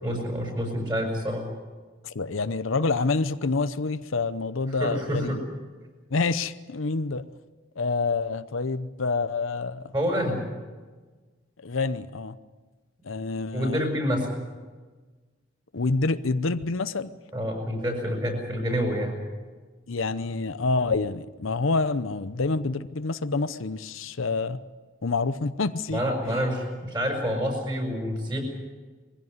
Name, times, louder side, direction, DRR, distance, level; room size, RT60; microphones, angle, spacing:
voice 1, 0.0-1.4 4.8-5.4 9.9-10.4 13.5-14.3 17.3-19.2 25.9-28.5, equal, 20° right, 2 dB, 6.7 m, -27 dB
voice 2, 2.0-5.4 6.1-7.3 7.8-9.9 11.6-12.4 13.1-13.8 15.7-17.1 19.9-24.6 25.0-26.0, left 3 dB, 70° left, 12 dB, 0.8 m, -27 dB
22.5 x 16.0 x 9.6 m, 1.3 s
head